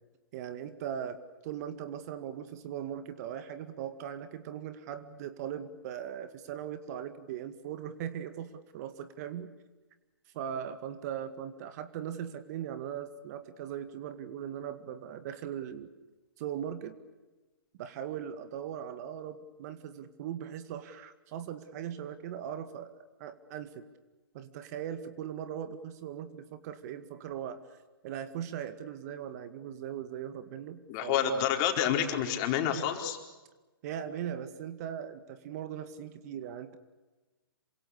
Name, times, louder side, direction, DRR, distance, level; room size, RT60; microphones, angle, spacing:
voice 1, 0.3-9.5 10.3-15.9 16.4-17.0 17.8-23.8 24.3-27.6 28.0-31.5 33.8-36.8, right 9 dB, 45° right, 11 dB, 2.1 m, -39 dB
voice 2, 30.9-33.2, left 9 dB, 35° left, 4 dB, 4.5 m, -28 dB
27.5 x 25.5 x 6.8 m, 1.2 s
hypercardioid pair, 125°, 12 cm